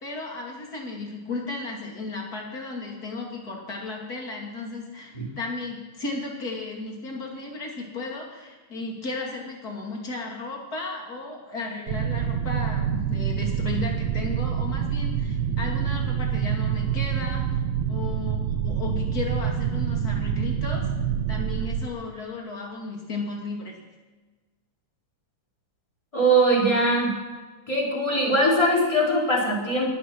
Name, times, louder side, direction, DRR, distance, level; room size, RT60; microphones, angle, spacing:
voice 1, 0.0-17.6 17.9-18.4 18.6-20.9 21.3-23.8, left 3 dB, 30° left, -1 dB, 1.8 m, -34 dB
sound 1, 11.9-21.9, right 8 dB, 80° right, 3.1 m, -26 dB
voice 2, 26.1-27.1 27.7-29.9, right 1 dB, 10° left, -3 dB, 2.9 m, -21 dB
20.5 x 9.0 x 6.1 m, 1.3 s
omnidirectional pair, 5.5 m